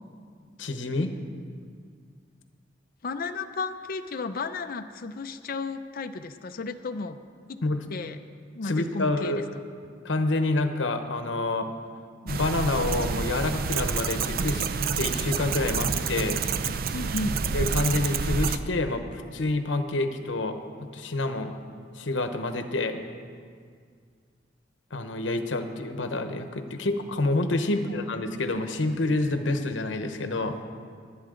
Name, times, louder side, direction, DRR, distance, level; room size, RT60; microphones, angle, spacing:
voice 1, 0.6-1.1 7.6-7.8 8.7-9.4 10.0-11.7 12.2-14.7 14.9-16.4 17.5-20.6 20.9-21.5 22.0-23.0 24.9-30.6, left 2 dB, 75° left, 7 dB, 0.9 m, -27 dB
voice 2, 3.0-7.2 7.5-7.6 7.9-8.2 8.5-9.4 16.9-17.4 27.7-27.8, left 3 dB, 50° left, 8 dB, 0.5 m, -33 dB
sound 1, 12.3-18.6, right 5 dB, 50° right, 0.5 m, -28 dB
22.5 x 8.7 x 3.8 m, 2.1 s
head